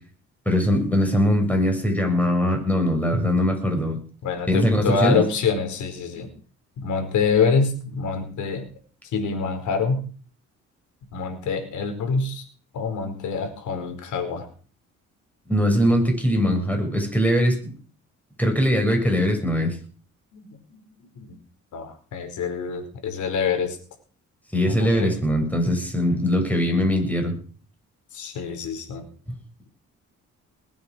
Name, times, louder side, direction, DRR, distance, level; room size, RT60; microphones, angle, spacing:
voice 1, 0.5-4.0 4.5-5.2 15.5-17.6 18.4-19.8 24.5-27.4, equal, 5° left, 3 dB, 6.8 m, -21 dB
voice 2, 4.2-6.3 6.8-8.7 9.1-10.0 11.1-12.4 12.7-14.5 20.3-20.4 20.7-21.4 21.7-23.8 24.7-25.1 28.1-29.0, left 5 dB, 75° left, 6 dB, 4.8 m, -26 dB
20.0 x 8.9 x 6.4 m, 0.40 s
cardioid pair, 90°, 30 cm